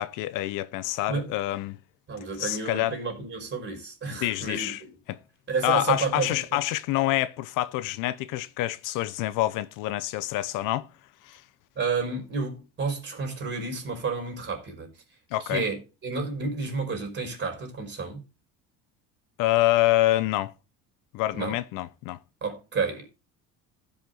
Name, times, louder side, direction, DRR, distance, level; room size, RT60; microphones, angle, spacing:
voice 1, 0.0-1.8 2.4-3.0 4.1-4.8 5.1-5.2 5.6-10.9 11.3-11.4 15.3-15.6 19.4-20.5 21.1-22.2, left 16 dB, 70° left, 0.7 m, -26 dB
voice 2, 2.1-4.9 5.5-6.4 11.7-14.9 15.4-18.2 21.3-21.6 22.4-23.1, right 4 dB, 35° right, 4.6 m, -31 dB
15.5 x 5.4 x 3.8 m
cardioid pair, 125°, 33 cm